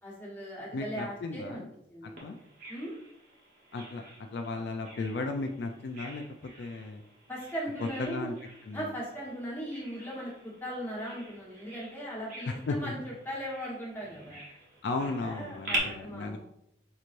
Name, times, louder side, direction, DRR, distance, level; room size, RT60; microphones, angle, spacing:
voice 1, 0.0-1.6 1.9-2.2 2.7-3.0 7.3-8.3 8.7-14.4 15.0-16.4, equal, 10° left, -5 dB, 1.2 m, -38 dB
voice 2, 0.7-1.7 2.0-2.4 3.7-7.0 7.8-8.3 8.6-8.9 12.4-12.9 14.8-16.4, left 3 dB, 60° left, 4 dB, 0.3 m, -35 dB
Bird vocalization bird call bird song, 2.2-15.8, right 2 dB, 45° right, 1.1 m, -44 dB
5.5 x 3.1 x 2.5 m, 0.78 s
head